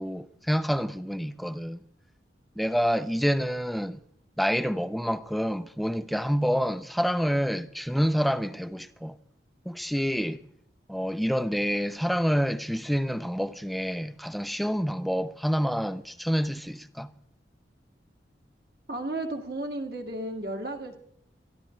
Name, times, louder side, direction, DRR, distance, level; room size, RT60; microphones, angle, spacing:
voice 1, 0.0-1.8 2.6-4.0 4.4-9.2 9.7-10.4 10.9-17.1, equal, ahead, 0.5 m, -27 dB
voice 2, 18.9-21.0, right 1 dB, 55° right, 2.1 m, -33 dB
23.5 x 13.5 x 3.2 m
head